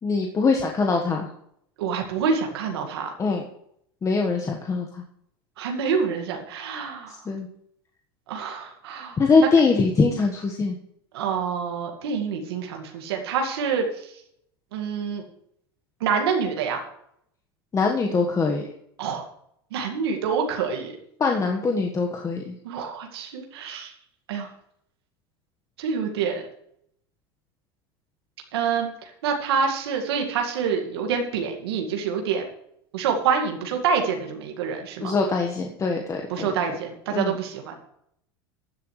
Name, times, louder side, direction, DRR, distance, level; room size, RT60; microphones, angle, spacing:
voice 1, 0.0-1.3 3.2-3.4 4.0-5.0 7.1-7.5 9.2-10.8 17.7-18.6 21.2-22.5 35.0-36.5 37.1-37.4, left 4 dB, 25° left, 2 dB, 1.4 m, -22 dB
voice 2, 1.8-3.1 5.6-7.2 8.3-9.2 11.1-14.1 14.7-15.2 16.0-16.8 19.0-19.2 19.7-20.9 22.6-23.9 24.3-24.5 25.8-26.5 28.5-32.5 32.9-35.1 36.3-37.8, right 6 dB, 80° right, 2 dB, 2.1 m, -27 dB
15.5 x 10.5 x 3.3 m, 0.72 s
supercardioid pair, 105°, 13 cm